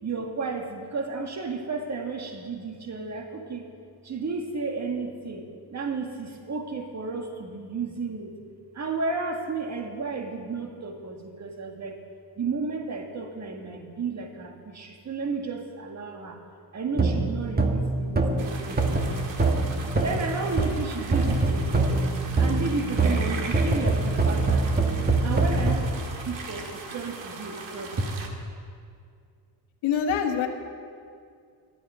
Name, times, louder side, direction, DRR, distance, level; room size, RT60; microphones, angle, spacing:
voice 1, 0.0-3.7 4.0-5.4 5.7-8.3 8.7-12.0 12.4-16.4 16.7-19.3 20.0-22.0 22.4-24.7 25.2-28.1, right 4 dB, 35° right, 4 dB, 1.8 m, -33 dB
sound 1, 16.9-20.9 21.1-25.7, right 2 dB, 20° right, 1.3 m, -24 dB
sound 2, 18.4-28.3, right 4 dB, 75° right, 2.0 m, -40 dB
voice 2, 29.8-30.5, left 7 dB, 90° left, 4 dB, 1.4 m, -24 dB
12.0 x 8.7 x 9.9 m, 2.3 s
cardioid pair, 105°, 45 cm